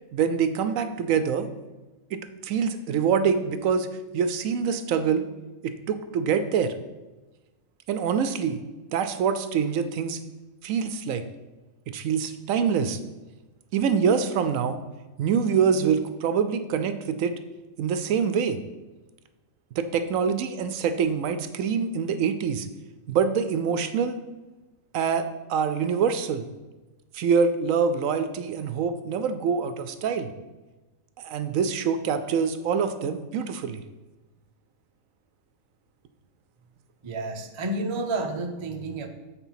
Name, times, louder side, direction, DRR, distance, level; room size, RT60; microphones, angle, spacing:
voice 1, 0.1-1.5 2.1-3.9 4.1-5.3 5.6-6.7 7.9-8.6 8.9-10.2 10.6-11.2 11.9-13.0 13.7-14.8 15.2-17.3 17.8-18.6 19.8-22.7 23.1-24.2 24.9-26.5 27.1-30.3 31.2-33.8, right 6 dB, 70° right, 10 dB, 0.9 m, -25 dB
voice 2, 37.0-39.1, right 2 dB, 35° right, 4 dB, 0.5 m, -30 dB
8.1 x 4.0 x 5.7 m, 1.1 s
omnidirectional pair, 1.5 m